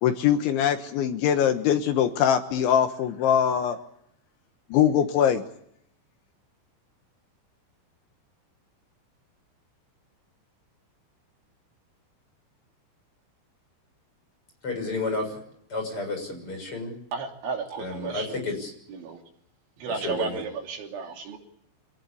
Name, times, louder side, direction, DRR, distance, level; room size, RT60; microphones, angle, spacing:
voice 1, 0.0-3.8 4.7-5.4, left 9 dB, 75° left, 7 dB, 3.5 m, -22 dB
voice 2, 14.6-15.4 15.7-17.0 17.8-18.7 19.9-20.4, left 3 dB, 25° left, 4 dB, 7.2 m, -31 dB
voice 3, 17.1-18.4 18.9-19.2 19.8-21.4, right 5 dB, 70° right, 2 dB, 5.2 m, -33 dB
27.0 x 18.5 x 8.6 m, 0.73 s
omnidirectional pair, 5.8 m